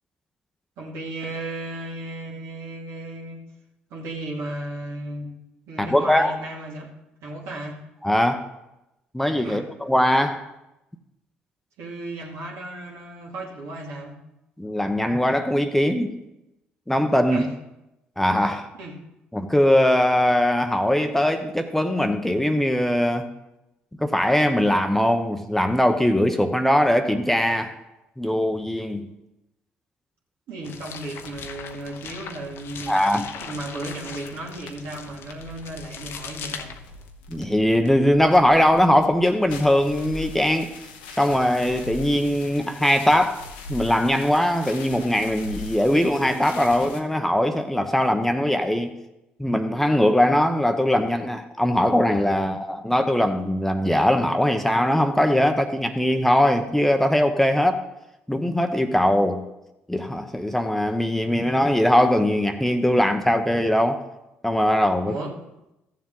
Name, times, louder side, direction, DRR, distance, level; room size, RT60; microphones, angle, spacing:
voice 1, 0.8-3.4 3.9-5.3 5.7-6.9 7.2-7.8 9.4-9.6 11.8-14.1 17.3-17.5 18.8-18.9 30.5-33.0 33.4-36.7 65.0-65.3, right 2 dB, 70° right, -1 dB, 2.2 m, -35 dB
voice 2, 5.8-6.3 8.0-8.5 9.1-10.5 14.6-16.2 16.9-17.5 18.2-18.7 19.3-23.3 24.0-27.8 28.2-29.1 32.9-33.3 37.3-40.8 41.2-48.9 49.4-57.8 58.3-59.4 59.9-64.0 64.4-65.2, left 1 dB, 5° left, 7 dB, 0.9 m, -21 dB
sound 1, 30.6-37.1, left 7 dB, 60° left, 0.8 m, -39 dB
sound 2, 31.2-47.0, left 4 dB, 85° left, 0.9 m, -42 dB
14.0 x 7.2 x 3.8 m, 0.92 s
hypercardioid pair, 55°, 5 cm